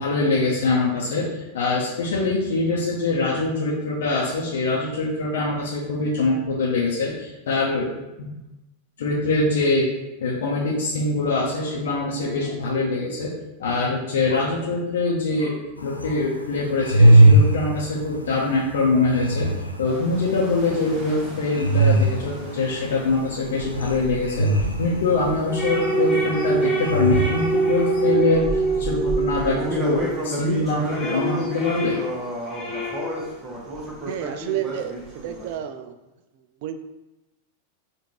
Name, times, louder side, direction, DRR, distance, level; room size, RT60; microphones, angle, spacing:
voice 1, 0.0-7.9 8.2-8.3 9.0-9.9 10.2-13.3 13.6-19.5 19.8-24.5 24.8-32.0 32.7-32.8, left 3 dB, 60° left, -4 dB, 0.7 m, -24 dB
sound 1, 15.8-28.1, right 1 dB, 85° left, 0.4 m, -21 dB
sound 2, 19.8-26.6 27.1-35.6, right 1 dB, 25° right, 0.9 m, -33 dB
sound 3, 25.5-30.2 30.6-33.3, right 3 dB, 20° left, 1.1 m, -25 dB
voice 2, 34.1-36.0 36.3-36.8, right 11 dB, 50° right, 9 dB, 0.3 m, -31 dB
4.8 x 2.5 x 3.0 m, 1.0 s
figure-of-eight pair, 90°, 0 cm